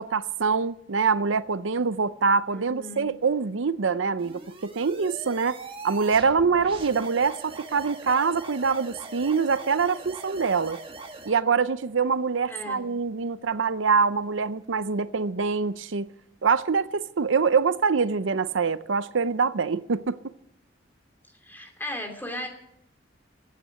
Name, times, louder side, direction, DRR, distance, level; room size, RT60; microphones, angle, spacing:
voice 1, 0.0-5.6 5.8-10.8 11.3-16.1 16.4-20.2, right 5 dB, 80° right, 0.7 m, -24 dB
voice 2, 2.5-3.1 12.5-12.8 21.4-22.5, left 1 dB, 10° left, 2.7 m, -36 dB
sound 1, 4.2-11.3, right 3 dB, 30° right, 1.7 m, -41 dB
15.5 x 9.3 x 7.9 m
head